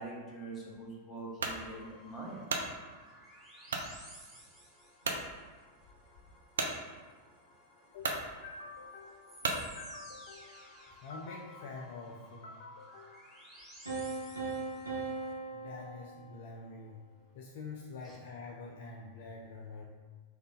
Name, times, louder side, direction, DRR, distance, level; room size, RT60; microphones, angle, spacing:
voice 1, 0.0-2.4, right 2 dB, 20° left, -3 dB, 1.0 m, -44 dB
sound 1, 1.4-1.6 2.2-2.7 3.7-3.9 4.5-4.6 5.0-5.2 6.6-6.8 7.5-7.6 8.0-8.2 9.4-9.7, right 3 dB, 65° right, 0.4 m, -33 dB
sound 2, 1.5-15.3, equal, ahead, 1.4 m, -56 dB
voice 2, 7.9-13.2 15.5-17.0 17.3-19.8, left 3 dB, 55° left, -1 dB, 0.4 m, -47 dB
sound 3, 13.9-16.8, right 3 dB, 80° right, 0.9 m, -39 dB
3.8 x 2.5 x 3.6 m, 1.4 s
figure-of-eight pair, 90°, 0 cm